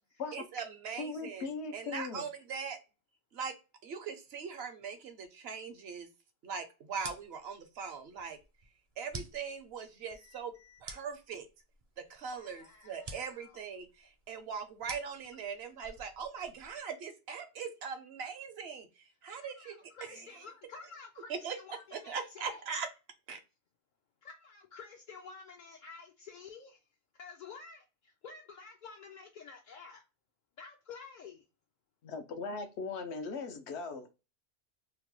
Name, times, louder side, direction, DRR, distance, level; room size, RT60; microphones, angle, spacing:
voice 1, 0.3-1.5 1.7-2.8 3.3-3.5 3.8-6.1 6.4-8.4 9.0-10.5 10.8-11.5 12.0-20.3 21.3-22.9 23.3-23.4, right 6 dB, 70° right, 0.9 m, -41 dB
voice 2, 1.0-2.2 32.0-34.1, left 4 dB, 75° left, 0.9 m, -39 dB
sound 1, 6.9-16.8, right 3 dB, 45° right, 0.5 m, -50 dB
voice 3, 10.1-10.8 12.3-13.6 19.4-22.6 24.2-26.8 27.2-30.0 30.6-31.4, left 5 dB, 60° left, 0.5 m, -51 dB
2.9 x 2.2 x 3.0 m
omnidirectional pair, 1.1 m